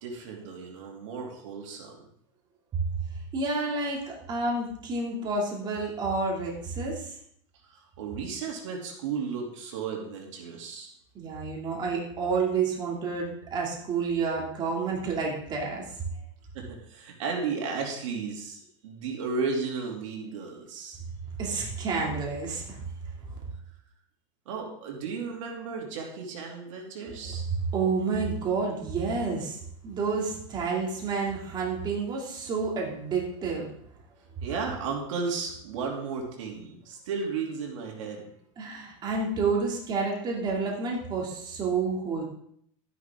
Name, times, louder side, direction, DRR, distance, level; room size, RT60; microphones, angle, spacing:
voice 1, 0.0-2.1 7.7-10.9 16.5-21.0 24.5-27.5 34.4-38.3, right 5 dB, 75° right, 0 dB, 2.8 m, -34 dB
voice 2, 3.3-7.1 11.1-15.8 21.4-22.8 23.3-23.4 27.2-27.4 27.7-29.6 29.8-33.7 38.6-42.2, right 4 dB, 25° right, -2 dB, 2.7 m, -29 dB
12.0 x 10.5 x 3.7 m, 0.67 s
supercardioid pair, 140°, 16 cm